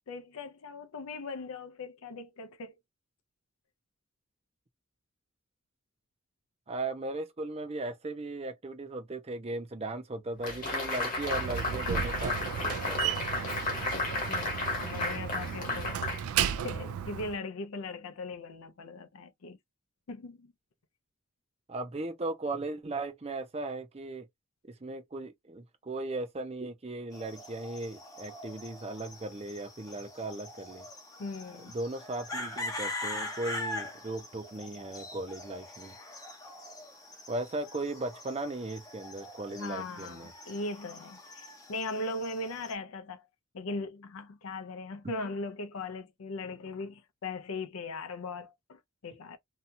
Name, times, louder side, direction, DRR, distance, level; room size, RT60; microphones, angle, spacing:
voice 1, 0.1-2.7 13.9-16.0 16.6-19.6 20.1-20.5 31.2-31.8 39.5-43.3 43.5-49.4, left 2 dB, 75° left, 0.5 m, -39 dB
voice 2, 6.7-13.2 21.7-24.3 24.6-30.9 31.6-35.9 37.3-40.3, right 2 dB, 30° right, 0.5 m, -37 dB
sound 1, 10.4-16.9, left 2 dB, 40° left, 1.2 m, -34 dB
Slam, 11.2-17.4, right 9 dB, 85° right, 0.3 m, -34 dB
sound 2, 27.1-42.7, left 1 dB, 15° left, 0.6 m, -43 dB
2.7 x 2.3 x 2.6 m
head